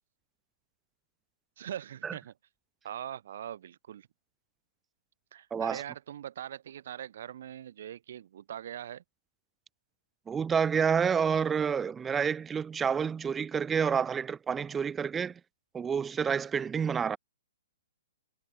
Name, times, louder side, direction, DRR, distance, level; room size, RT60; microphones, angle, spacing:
voice 1, 1.6-2.3 2.8-4.1 5.3-9.0, right 10 dB, 50° right, 6.3 m, -41 dB
voice 2, 5.5-5.8 10.3-15.4 15.7-17.2, right 6 dB, 10° right, 0.4 m, -29 dB
hypercardioid pair, 170°, 0 cm